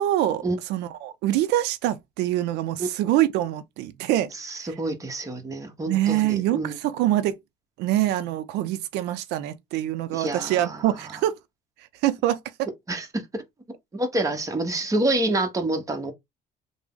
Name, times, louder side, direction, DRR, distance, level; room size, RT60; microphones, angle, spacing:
voice 1, 0.0-0.4 0.7-4.3 4.6-4.7 5.9-7.4 7.8-11.3 12.0-12.7, right 13 dB, 90° right, 0.4 m, -25 dB
voice 2, 4.4-6.8 10.1-10.9 12.9-13.1 13.3-13.4 13.9-16.1, right 2 dB, 20° right, 0.9 m, -27 dB
3.4 x 2.0 x 3.6 m
cardioid pair, 110°, 17 cm